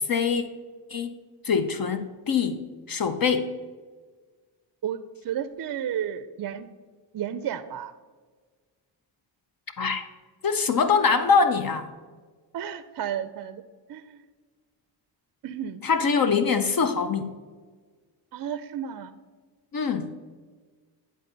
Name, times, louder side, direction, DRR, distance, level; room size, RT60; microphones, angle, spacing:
voice 1, 0.1-0.4 0.9-1.1 1.4-2.6 2.9-3.5 9.8-10.0 10.4-11.9 15.8-17.3 19.7-20.1, left 5 dB, 45° left, 8 dB, 0.6 m, -23 dB
voice 2, 5.2-6.7 7.1-7.9 12.5-13.6 13.9-14.2 15.4-15.8 18.3-19.1, right 9 dB, 45° right, 12 dB, 0.5 m, -32 dB
10.5 x 3.9 x 3.9 m, 1.5 s
supercardioid pair, 45°, 49 cm